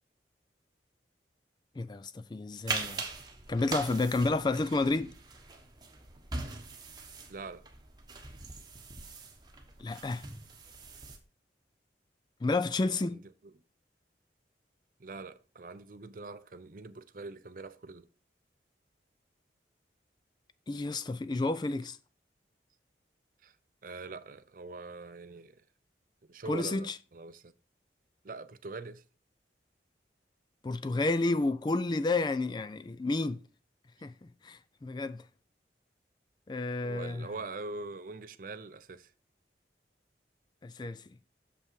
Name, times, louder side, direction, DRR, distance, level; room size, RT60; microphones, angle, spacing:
voice 1, 1.8-3.0 3.5-5.1 9.8-10.2 12.4-13.2 20.7-22.0 26.5-27.0 30.6-33.4 34.0-35.2 36.5-37.3 40.6-41.0, left 2 dB, 25° left, 0.3 m, -31 dB
sound 1, 2.7-11.2, right 3 dB, 25° right, 1.1 m, -41 dB
voice 2, 7.3-7.6 12.9-13.5 15.0-18.1 23.4-23.6 23.8-25.6 26.3-27.5 28.2-29.0 36.8-39.1, right 3 dB, 50° right, 0.6 m, -43 dB
6.9 x 5.6 x 4.6 m
head